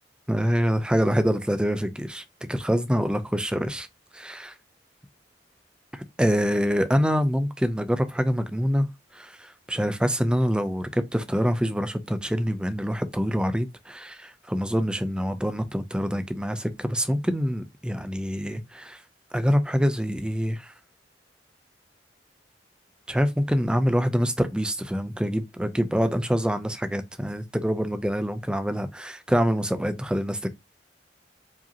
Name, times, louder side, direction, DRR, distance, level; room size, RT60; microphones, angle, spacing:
voice 1, 0.3-3.9 4.1-4.5 5.9-19.0 19.3-20.7 23.1-30.5, equal, 5° right, 0.4 m, -25 dB
4.8 x 2.8 x 2.7 m
head